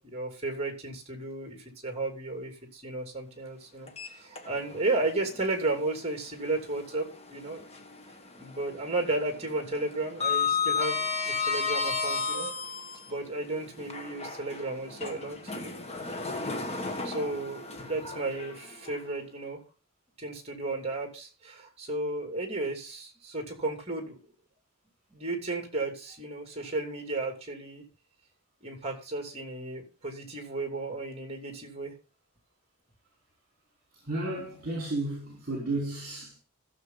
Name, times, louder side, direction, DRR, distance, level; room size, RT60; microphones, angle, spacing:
voice 1, 0.0-7.6 8.4-12.5 13.1-15.7 17.0-19.6 20.2-24.2 25.1-27.8 28.6-31.9, right 2 dB, 30° right, 2.9 m, -34 dB
Sliding door, 3.9-4.9 5.2-5.4 7.1-8.1 8.4-8.8 9.0-13.1 13.8-19.0, left 5 dB, 30° left, 1.3 m, -32 dB
voice 2, 34.1-36.4, right 2 dB, 45° right, 4.3 m, -33 dB
15.0 x 7.1 x 4.0 m
head